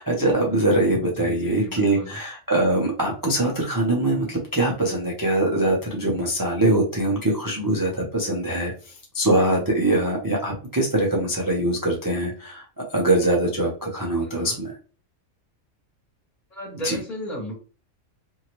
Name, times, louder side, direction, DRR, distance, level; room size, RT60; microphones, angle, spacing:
voice 1, 0.0-8.7 9.1-14.7 16.8-17.0, right 1 dB, 25° right, -2 dB, 0.4 m, -23 dB
voice 2, 1.2-2.2 14.2-14.6 16.5-17.5, equal, 30° left, -4 dB, 1.3 m, -35 dB
2.8 x 2.7 x 2.9 m, 0.37 s
omnidirectional pair, 1.5 m